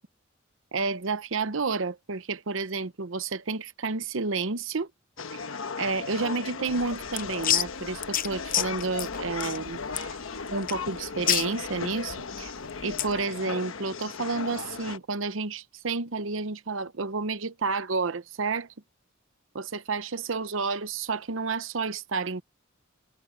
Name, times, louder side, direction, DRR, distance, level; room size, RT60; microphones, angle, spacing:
voice 1, 0.7-4.9 5.3-5.4 5.8-10.2 10.5-12.5 12.8-18.7 19.5-22.4, right 4 dB, 75° right, 0.9 m, -30 dB
sound 1, 5.2-15.0, left 5 dB, 90° left, 1.1 m, -36 dB
sound 2, 6.7-13.2, left 11 dB, 45° left, 0.8 m, -30 dB
head